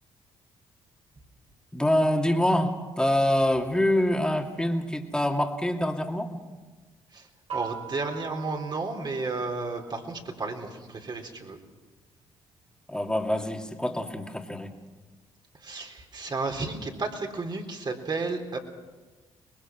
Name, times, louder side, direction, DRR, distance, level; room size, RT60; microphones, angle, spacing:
voice 1, 1.7-6.4 12.9-14.7, left 1 dB, 5° left, 3 dB, 2.6 m, -25 dB
voice 2, 7.1-11.6 15.6-18.6, right 3 dB, 40° right, 3 dB, 3.8 m, -33 dB
sound 1, 7.5-10.2, right 8 dB, 65° right, 4.6 m, -41 dB
23.5 x 20.5 x 6.1 m, 1.3 s
supercardioid pair, 60°, 11 cm